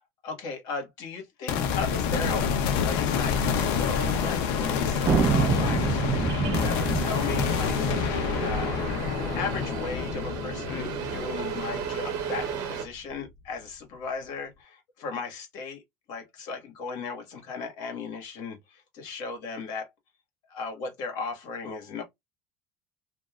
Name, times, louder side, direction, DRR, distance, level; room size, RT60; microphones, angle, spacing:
voice 1, 0.2-15.8 16.1-19.9 20.5-22.0, left 4 dB, 55° left, 1.5 m, -36 dB
sound 1, 1.5-12.8, left 7 dB, 75° left, 0.7 m, -28 dB
sound 2, 2.5-12.9, right 7 dB, 50° right, 0.8 m, -36 dB
sound 3, 5.0-8.7, right 6 dB, 20° right, 0.4 m, -27 dB
3.1 x 2.6 x 2.3 m
cardioid pair, 175°, 8 cm